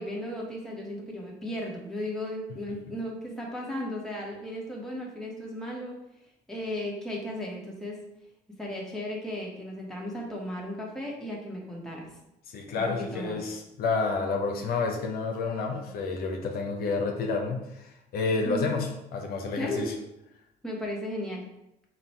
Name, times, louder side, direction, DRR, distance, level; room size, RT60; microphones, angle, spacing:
voice 1, 0.0-6.0 6.5-8.0 8.6-12.1 12.9-13.4 18.4-18.7 19.5-19.9 20.6-21.4, left 1 dB, 5° left, -3 dB, 1.2 m, -35 dB
voice 2, 12.5-19.9, left 4 dB, 65° left, 2 dB, 0.7 m, -30 dB
3.9 x 2.3 x 4.3 m, 0.85 s
supercardioid pair, 85°, 17 cm